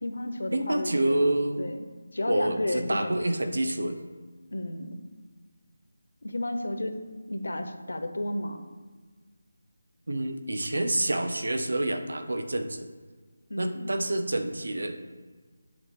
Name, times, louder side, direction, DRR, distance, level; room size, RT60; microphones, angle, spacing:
voice 1, 0.0-1.2 1.6-1.9 2.1-3.2 4.5-5.0 6.2-8.6 13.5-13.9, left 1 dB, 85° left, 8 dB, 0.9 m, -32 dB
voice 2, 0.5-1.7 2.3-4.0 10.1-12.9 13.6-15.1, right 1 dB, 80° right, 7 dB, 0.8 m, -28 dB
7.2 x 4.1 x 5.2 m, 1.4 s
figure-of-eight pair, 180°, 0 cm